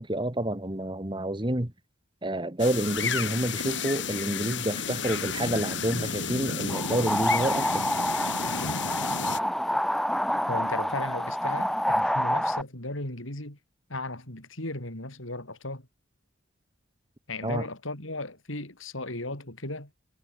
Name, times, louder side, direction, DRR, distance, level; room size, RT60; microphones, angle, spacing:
voice 1, 0.0-1.7 2.2-7.9 17.4-17.6, right 1 dB, 25° right, 1.5 m, -29 dB
sound 1, 2.6-9.4, left 6 dB, 60° left, 4.3 m, -32 dB
sound 2, 6.7-12.6, equal, ahead, 0.7 m, -27 dB
voice 2, 10.5-13.6 13.9-15.9 17.3-19.9, left 2 dB, 80° left, 5.9 m, -36 dB
head